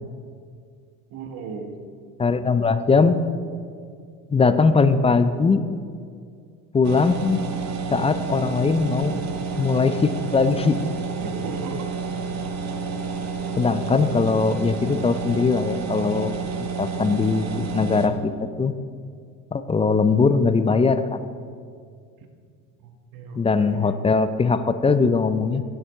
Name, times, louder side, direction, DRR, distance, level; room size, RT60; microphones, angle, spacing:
voice 1, 1.1-1.8 11.1-11.9 22.8-24.0, right 5 dB, 55° right, 5 dB, 1.4 m, -37 dB
voice 2, 2.2-3.2 4.3-5.6 6.7-7.4 7.9-9.2 9.6-10.8 13.6-16.3 16.6-18.3 18.6-18.7 19.5-21.3 23.4-25.6, left 4 dB, 15° left, 11 dB, 0.4 m, -20 dB
sound 1, 6.8-18.1, right 4 dB, 40° right, 1.2 m, -30 dB
11.0 x 8.0 x 3.6 m, 2.2 s
hypercardioid pair, 70°, 42 cm